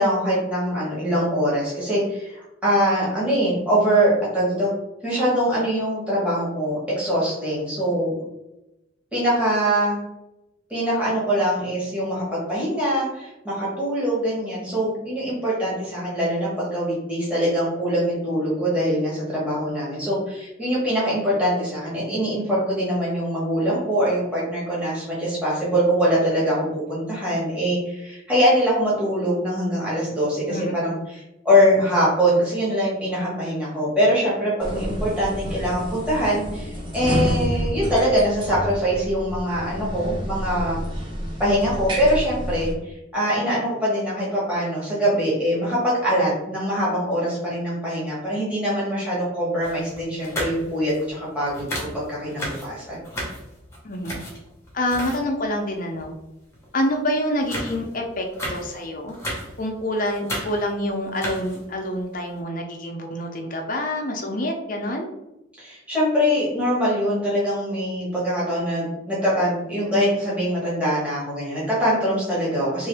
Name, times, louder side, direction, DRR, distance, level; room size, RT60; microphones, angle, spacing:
voice 1, 0.0-4.7 5.0-8.1 9.1-10.0 10.7-40.8 41.4-53.0 65.6-72.9, equal, 5° right, -8 dB, 1.4 m, -23 dB
voice 2, 30.5-30.9 53.8-54.2 54.7-56.1 56.7-59.1 59.6-65.1, left 1 dB, 40° left, 2 dB, 0.6 m, -27 dB
sound 1, 34.6-42.7, equal, 25° right, 0.9 m, -29 dB
sound 2, 49.6-51.2 51.5-55.5 55.9-56.1 56.5-56.9 57.2-59.7 59.9-60.8 61.1-61.8 62.3-62.4, equal, 15° left, 1.0 m, -34 dB
3.7 x 2.7 x 3.3 m, 0.92 s
head